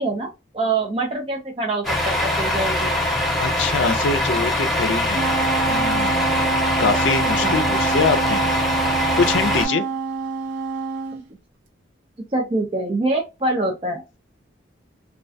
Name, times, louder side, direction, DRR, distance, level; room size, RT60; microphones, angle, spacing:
voice 1, 0.0-2.9 7.4-7.7 11.1-11.2 12.3-14.0, right 2 dB, 30° right, 0.4 m, -25 dB
Truck, 1.8-9.7, left 1 dB, ahead, 0.7 m, -22 dB
voice 2, 3.4-5.3 5.6-6.5 6.8-8.5 8.9-9.8, left 4 dB, 80° left, 0.4 m, -24 dB
Wind instrument woodwind instrument, 5.1-11.2, right 5 dB, 80° right, 0.6 m, -26 dB
2.3 x 2.2 x 2.5 m
head